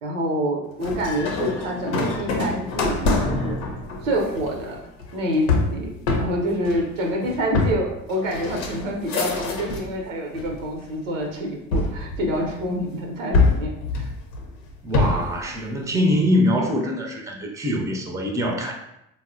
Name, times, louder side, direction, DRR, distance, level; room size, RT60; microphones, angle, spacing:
voice 1, 0.0-3.6 4.0-4.8 5.1-13.7 14.0-14.1, equal, 80° right, 1 dB, 0.7 m, -27 dB
sound 1, 0.8-10.0 10.3-11.0 11.7-12.8 13.3-15.4, left 3 dB, 75° left, 0.7 m, -25 dB
voice 2, 14.8-18.7, left 1 dB, 10° right, 1 dB, 0.5 m, -23 dB
4.0 x 2.0 x 2.5 m, 0.82 s
hypercardioid pair, 60°, 38 cm